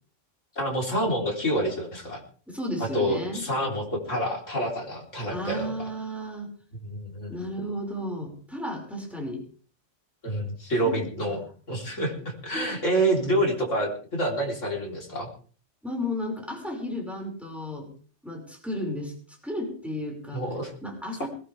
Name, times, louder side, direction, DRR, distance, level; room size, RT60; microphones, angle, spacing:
voice 1, 0.6-2.2 2.9-5.7 6.8-7.4 10.2-11.4 11.7-15.3 20.3-20.7 21.2-21.3, right 1 dB, 80° left, 0 dB, 4.1 m, -27 dB
voice 2, 2.5-3.4 5.3-6.5 7.3-9.4 10.9-11.0 11.4-11.5 12.5-12.7 15.8-17.9 18.2-20.4 20.8-21.3, left 1 dB, ahead, 1 dB, 5.5 m, -33 dB
20.5 x 17.0 x 3.4 m, 0.42 s
omnidirectional pair, 1.3 m